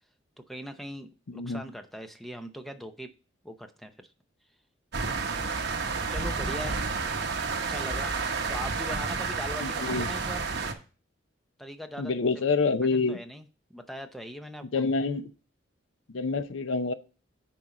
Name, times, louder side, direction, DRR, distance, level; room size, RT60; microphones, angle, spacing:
voice 1, 0.5-3.1 3.4-4.1 6.1-6.8 7.7-8.2 8.5-10.5 11.6-12.4 12.9-13.4 13.7-14.8, equal, ahead, 7 dB, 0.6 m, -40 dB
voice 2, 1.3-1.6 9.6-10.1 12.0-13.2 14.7-15.3 16.1-16.9, left 4 dB, 70° left, 13 dB, 0.6 m, -27 dB
sound 1, 4.9-10.7, right 4 dB, 55° right, 1.0 m, -30 dB
9.7 x 4.5 x 3.8 m, 0.35 s
head